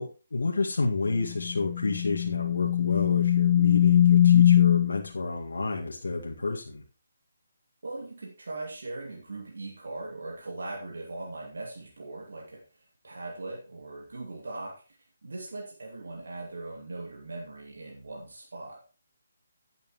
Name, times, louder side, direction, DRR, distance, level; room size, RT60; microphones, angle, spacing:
voice 1, 0.0-6.8, left 3 dB, 75° left, 0 dB, 2.0 m, -30 dB
sound 1, 1.1-5.0, left 11 dB, 35° left, 0.5 m, -21 dB
voice 2, 7.8-15.0 15.2-18.8, right 2 dB, 70° right, 0 dB, 2.5 m, -40 dB
16.0 x 8.1 x 3.1 m, 0.33 s
figure-of-eight pair, 150°, 0 cm